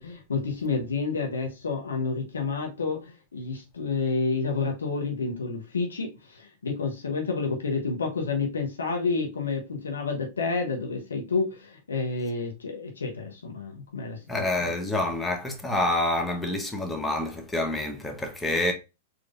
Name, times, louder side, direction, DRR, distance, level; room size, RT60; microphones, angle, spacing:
voice 1, 0.0-14.2 14.6-14.7, left 4 dB, 80° left, 1.1 m, -29 dB
voice 2, 14.3-18.7, left 1 dB, 10° left, 1.0 m, -27 dB
4.2 x 3.2 x 2.5 m
hypercardioid pair, 100°, 0 cm